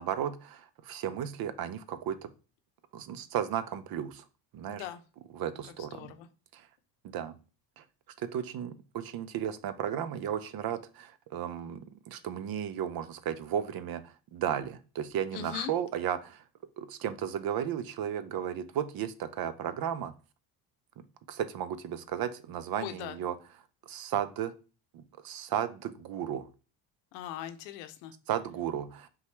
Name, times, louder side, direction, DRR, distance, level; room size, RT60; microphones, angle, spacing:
voice 1, 0.0-2.3 2.9-4.2 4.5-4.8 5.3-6.1 6.5-6.7 7.0-7.3 7.8-7.9 8.2-16.4 16.8-20.1 21.3-23.3 23.9-24.5 24.9-26.5 28.3-29.1, right 9 dB, 50° right, 13 dB, 0.6 m, -34 dB
voice 2, 4.7-5.0 5.6-6.3 15.3-15.7 22.8-23.2 27.1-28.1, left 11 dB, 75° left, 9 dB, 0.7 m, -40 dB
5.4 x 2.4 x 3.2 m, 0.34 s
hypercardioid pair, 65°, 49 cm